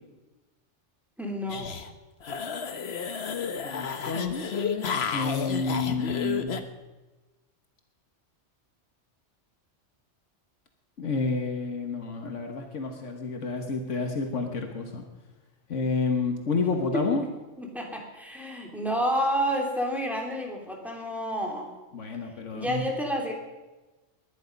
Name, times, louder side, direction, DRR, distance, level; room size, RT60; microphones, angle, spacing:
voice 1, 1.2-1.7 16.9-17.0 17.6-21.7 22.5-23.3, equal, ahead, 0 dB, 3.0 m, -29 dB
sound 1, 1.5-1.9 2.2-6.6, left 6 dB, 60° left, 1.2 m, -32 dB
voice 2, 3.6-6.6 11.0-15.0 15.7-17.2 21.9-22.8, left 4 dB, 85° left, 4 dB, 1.8 m, -30 dB
21.0 x 10.5 x 5.3 m, 1.1 s
omnidirectional pair, 1.2 m